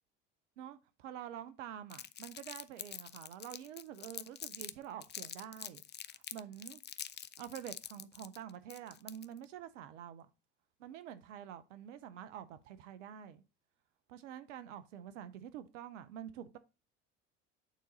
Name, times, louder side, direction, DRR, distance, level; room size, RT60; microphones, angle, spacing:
voice 1, 0.6-5.8 6.3-6.8 7.4-10.3 10.8-13.4 14.1-16.6, right 10 dB, 85° right, 0.8 m, -47 dB
Crumpling crinkling, 1.9-4.7 5.0-9.4, left 9 dB, 30° left, 0.5 m, -46 dB
9.3 x 4.1 x 4.0 m
hypercardioid pair, 65°, 36 cm